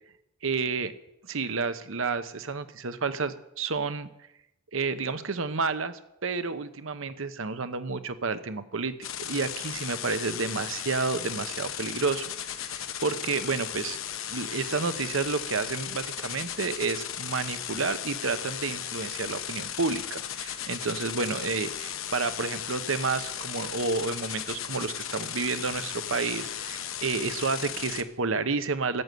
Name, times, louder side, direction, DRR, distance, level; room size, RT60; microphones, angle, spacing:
voice 1, 0.4-0.9 1.2-4.1 4.7-12.3 12.6-14.0 14.3-29.0, right 4 dB, 65° right, 11 dB, 0.9 m, -30 dB
sound 1, 9.0-28.0, left 10 dB, 70° left, 1.0 m, -36 dB
13.5 x 8.1 x 9.2 m, 0.85 s
head